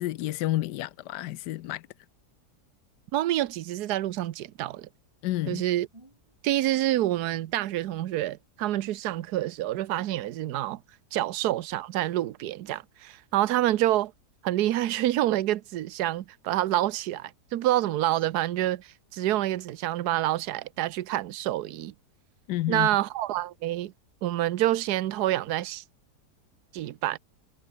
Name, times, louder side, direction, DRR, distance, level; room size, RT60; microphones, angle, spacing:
voice 1, 0.0-1.8 5.2-5.6 22.5-22.9, left 15 dB, 85° left, 1.2 m, -30 dB
voice 2, 3.1-4.9 5.5-5.9 6.4-10.8 11.1-14.1 14.4-21.9 22.7-23.9 24.2-25.8 26.7-27.2, right 14 dB, 70° right, 1.3 m, -27 dB
sound 1, 5.9-6.4 7.6-8.2 9.1-9.3 9.9-10.5 11.3-11.6 13.4-13.9 14.7-15.0 16.1-16.2 16.6-17.3 18.1-18.5, right 1 dB, 15° right, 2.9 m, -59 dB
omnidirectional pair, 1.8 m